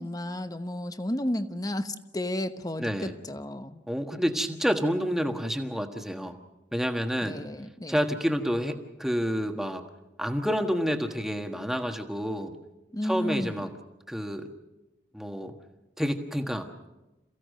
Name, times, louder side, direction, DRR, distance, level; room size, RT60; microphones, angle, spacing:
voice 1, 0.0-3.8 7.2-7.9 12.9-13.7, left 1 dB, 20° left, 10 dB, 1.0 m, -32 dB
voice 2, 2.8-3.1 3.9-6.4 6.7-7.4 7.9-9.8 10.2-12.5 13.0-13.7 14.1-14.5 15.1-15.5 16.0-16.7, equal, ahead, 5 dB, 1.4 m, -29 dB
28.5 x 16.0 x 6.6 m, 1.0 s
head